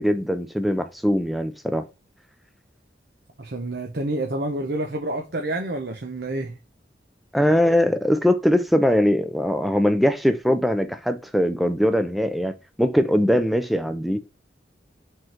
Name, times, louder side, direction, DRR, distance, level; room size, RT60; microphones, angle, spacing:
voice 1, 0.0-1.8 7.3-12.5 12.8-14.2, equal, ahead, 0.4 m, -21 dB
voice 2, 3.4-6.5, right 2 dB, 70° right, 0.8 m, -28 dB
5.2 x 3.7 x 5.8 m
head